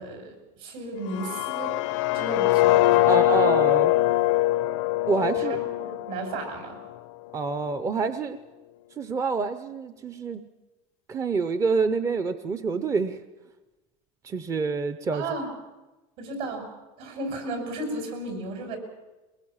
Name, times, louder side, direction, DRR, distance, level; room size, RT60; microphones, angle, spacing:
voice 1, 0.0-1.8 2.1-3.1 5.2-6.8 15.1-15.5 16.2-16.7 17.0-18.8, right 2 dB, 65° right, 4 dB, 6.6 m, -34 dB
sound 1, 1.0-7.0, left 17 dB, 80° left, 0.7 m, -23 dB
voice 2, 3.1-3.9 5.1-5.6 7.3-8.4 9.0-10.4 11.1-13.2 14.2-15.3, right 4 dB, 20° right, 11 dB, 0.7 m, -27 dB
22.5 x 21.0 x 7.3 m, 1.1 s
cardioid pair, 150°, 16 cm